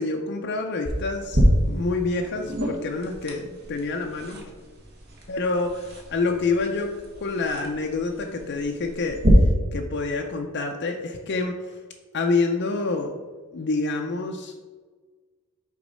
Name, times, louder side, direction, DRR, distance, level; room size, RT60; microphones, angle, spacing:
voice 1, 0.0-4.4 5.3-6.9 7.2-9.2 9.7-11.8 12.1-13.2 13.5-14.6, left 3 dB, 50° left, 3 dB, 0.5 m, -27 dB
sound 1, 0.8-9.3, equal, 50° right, 1.3 m, -29 dB
6.0 x 3.9 x 5.4 m, 1.4 s
head